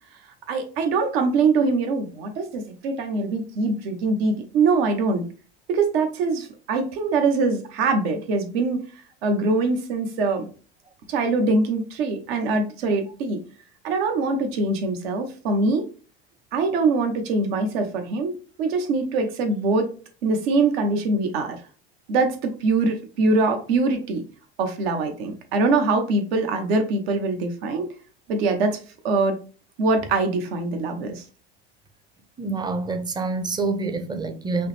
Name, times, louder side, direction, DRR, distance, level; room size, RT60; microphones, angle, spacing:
voice 1, 0.5-5.2 5.7-8.8 9.2-10.5 11.1-13.4 13.8-15.8 16.5-18.3 18.6-19.9 20.2-21.6 22.1-24.2 24.6-27.9 28.3-28.8 29.0-29.4 29.8-31.2, right 3 dB, 70° right, 1.0 m, -23 dB
voice 2, 32.4-34.7, right 3 dB, 15° right, 0.6 m, -27 dB
5.5 x 2.1 x 3.2 m
hypercardioid pair, 100°, 31 cm